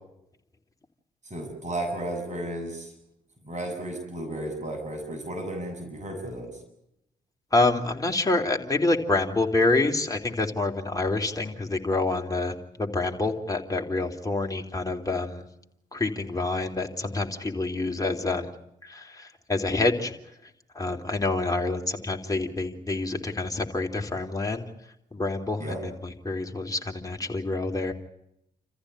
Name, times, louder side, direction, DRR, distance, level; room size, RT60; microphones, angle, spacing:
voice 1, 1.2-2.9 3.4-6.6 25.6-25.8, right 1 dB, 40° right, 4 dB, 7.9 m, -34 dB
voice 2, 7.5-15.4 15.9-18.5 18.8-20.1 20.7-24.6 25.1-27.9, left 2 dB, 20° left, 2 dB, 3.5 m, -27 dB
28.5 x 14.5 x 9.8 m, 0.80 s
hypercardioid pair, 40°, 18 cm